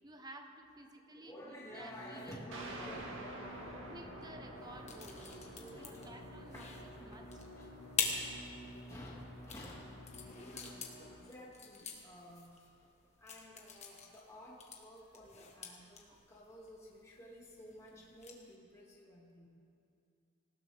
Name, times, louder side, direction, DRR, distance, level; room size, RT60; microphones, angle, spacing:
voice 1, 0.0-2.8 3.9-5.3 5.7-6.7 7.0-7.4 16.1-16.2, right 1 dB, 20° right, 5 dB, 1.0 m, -54 dB
voice 2, 1.1-3.9 4.9-6.1 6.5-6.7 7.6-7.7 8.9-10.0 10.4-12.6 13.2-19.5, equal, 15° left, -5 dB, 2.3 m, -53 dB
sound 1, 1.7-11.2, equal, 55° left, 2.6 m, -52 dB
sound 2, 2.5-11.7, right 1 dB, 70° right, 1.9 m, -52 dB
sound 3, 4.6-18.5, left 6 dB, 35° left, 1.5 m, -45 dB
19.0 x 16.0 x 3.5 m, 2.5 s
head